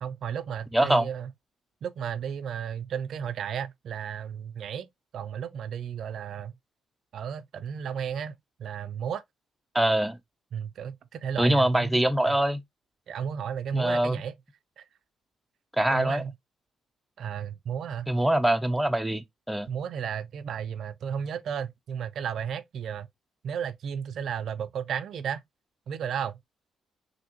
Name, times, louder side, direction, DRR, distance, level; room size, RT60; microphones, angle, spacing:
voice 1, 0.0-1.3 1.8-6.5 7.1-8.3 8.6-9.2 10.5-12.0 12.3-12.4 13.1-14.3 14.8-14.9 15.9-16.3 17.2-18.1 19.7-23.1 23.4-25.4 25.9-26.3, right 8 dB, 65° right, 0.3 m, -33 dB
voice 2, 0.7-1.1 9.7-10.2 11.4-12.6 13.7-14.2 15.8-16.2 18.1-19.7, right 1 dB, 5° right, 0.4 m, -24 dB
3.5 x 2.6 x 2.8 m
cardioid pair, 90°, 0 cm